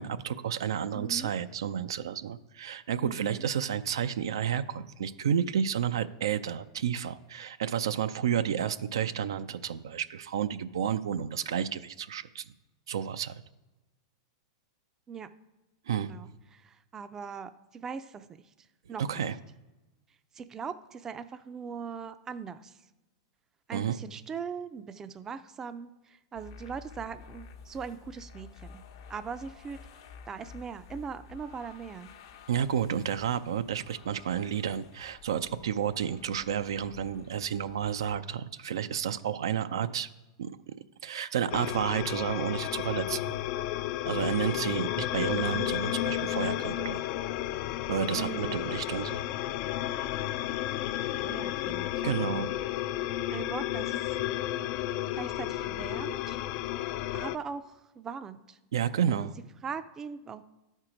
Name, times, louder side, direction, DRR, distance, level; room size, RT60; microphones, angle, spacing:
voice 1, 0.0-12.4 12.9-13.4 15.9-16.1 19.1-19.3 23.7-24.0 32.5-40.1 40.4-40.7 41.0-43.2 44.0-47.0 47.9-49.2 52.0-52.5 58.7-59.3, right 8 dB, 80° right, 11 dB, 0.4 m, -31 dB
voice 2, 0.9-1.3 3.0-3.5 15.1-15.3 15.9-18.3 18.9-19.2 20.3-22.8 23.7-28.8 29.1-29.8 30.3-32.1 48.1-48.6 51.0-51.9 53.3-54.1 55.1-56.4 56.8-58.6 59.1-59.3 59.6-60.4, right 6 dB, 20° right, 12 dB, 0.4 m, -40 dB
sound 1, 26.3-38.2, left 6 dB, 70° left, 0.8 m, -51 dB
sound 2, 41.5-57.4, left 13 dB, 50° left, 0.3 m, -32 dB
11.5 x 4.5 x 5.0 m, 1.0 s
hypercardioid pair, 120°, 2 cm